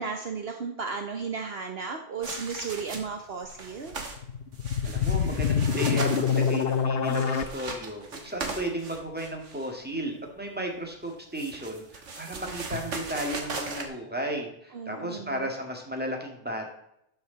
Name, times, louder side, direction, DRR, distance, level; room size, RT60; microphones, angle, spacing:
voice 1, 0.0-3.9 14.7-15.4, right 5 dB, 60° right, 5 dB, 1.1 m, -34 dB
sound 1, 2.2-3.2 3.5-4.2 4.5-9.7 11.0-13.9, right 3 dB, 80° right, 1.8 m, -38 dB
sound 2, 4.2-7.4, left 7 dB, 60° left, 0.9 m, -25 dB
voice 2, 4.8-16.7, equal, 10° right, 2 dB, 2.1 m, -34 dB
12.0 x 6.8 x 4.0 m, 0.78 s
omnidirectional pair, 1.2 m